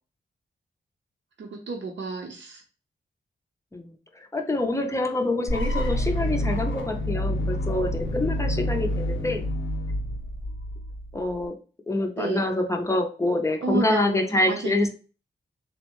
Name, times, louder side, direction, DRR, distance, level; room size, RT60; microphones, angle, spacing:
voice 1, 1.4-2.6 12.2-12.5 13.6-14.9, right 4 dB, 75° right, 2 dB, 0.6 m, -31 dB
voice 2, 3.7-9.4 11.1-11.5 11.9-14.9, left 2 dB, 15° left, 4 dB, 0.4 m, -26 dB
sound 1, 5.5-11.4, left 1 dB, 85° left, 0.7 m, -28 dB
3.7 x 2.1 x 2.9 m, 0.36 s
wide cardioid pair, 160°, 19 cm